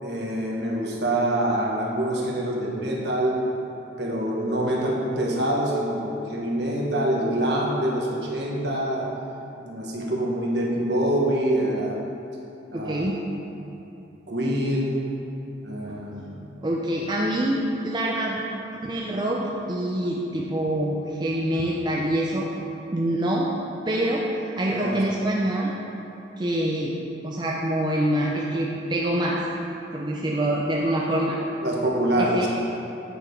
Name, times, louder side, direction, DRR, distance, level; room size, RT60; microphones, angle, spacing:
voice 1, 0.0-3.4 4.0-9.1 9.6-12.0 12.7-13.0 14.3-15.1 15.6-16.5 24.7-25.0 31.6-32.5, right 1 dB, 55° right, -3 dB, 1.3 m, -25 dB
voice 2, 12.7-13.2 15.9-16.0 16.6-18.4 18.8-22.5 22.9-23.5 23.9-24.2 24.6-25.7 26.4-27.0 27.2-29.4 29.9-31.4 32.2-32.5, right 1 dB, 25° right, -3 dB, 0.5 m, -25 dB
8.8 x 4.8 x 5.1 m, 2.9 s
head